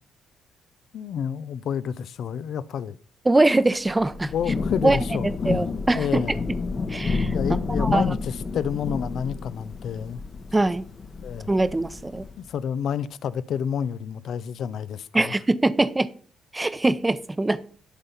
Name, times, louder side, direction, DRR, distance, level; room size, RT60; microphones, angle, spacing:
voice 1, 0.9-3.0 4.3-5.6 5.9-6.4 7.3-10.2 11.2-11.5 12.4-15.4, left 8 dB, 70° left, 0.5 m, -29 dB
voice 2, 3.3-4.3 4.8-5.0 5.4-6.4 6.9-7.3 7.8-8.1 10.5-10.8 11.5-12.2 15.1-16.1 16.5-17.6, right 2 dB, 20° right, 0.7 m, -22 dB
Thunder / Rain, 3.9-12.5, left 4 dB, 45° left, 1.0 m, -30 dB
11.5 x 4.0 x 5.7 m
supercardioid pair, 65°, 0 cm